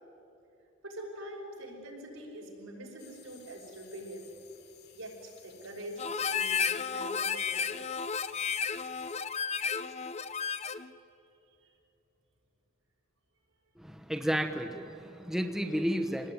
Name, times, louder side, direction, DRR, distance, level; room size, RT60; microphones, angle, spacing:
voice 1, 0.8-4.3 4.9-7.8 11.6-11.7, equal, 85° right, 0 dB, 5.9 m, -44 dB
sound 1, 3.0-9.2, left 9 dB, 50° left, 2.6 m, -58 dB
Harmonica, 6.0-10.9, left 6 dB, 30° left, 0.6 m, -32 dB
voice 2, 13.8-16.3, equal, ahead, 4 dB, 1.0 m, -32 dB
26.5 x 19.5 x 9.6 m, 2.8 s
head